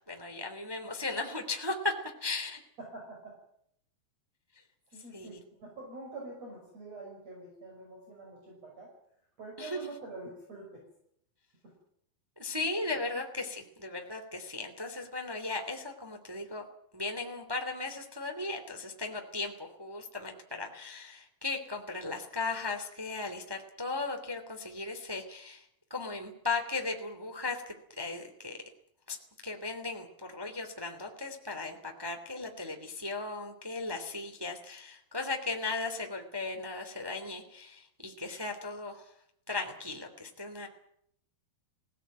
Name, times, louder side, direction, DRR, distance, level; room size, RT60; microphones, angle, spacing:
voice 1, 0.1-1.9 2.2-2.6 5.1-5.4 9.6-9.8 12.4-16.6 16.9-28.6 29.1-29.2 29.4-39.1 39.5-40.7, left 3 dB, 5° right, 4 dB, 2.2 m, -37 dB
voice 2, 2.8-3.4 4.9-8.9 9.4-10.8 11.6-11.7, right 2 dB, 45° right, 0 dB, 7.1 m, -46 dB
21.5 x 17.5 x 9.3 m, 0.72 s
omnidirectional pair, 4.1 m